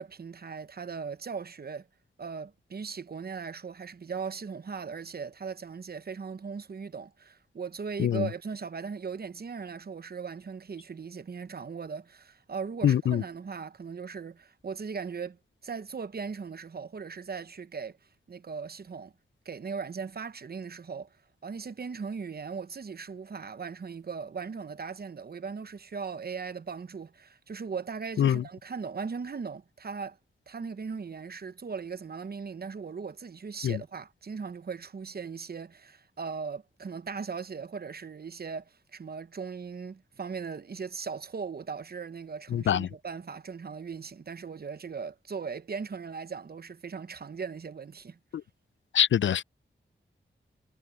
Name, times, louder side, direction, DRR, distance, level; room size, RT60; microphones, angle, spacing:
voice 1, 0.0-1.9 2.2-18.0 18.3-19.1 19.4-21.1 21.4-30.2 30.5-48.2, right 5 dB, 50° right, 0.9 m, -38 dB
voice 2, 12.8-13.2 28.2-28.4 33.6-33.8 42.5-42.9 48.9-49.4, left 10 dB, 70° left, 0.4 m, -24 dB
cardioid pair, 65°, 20 cm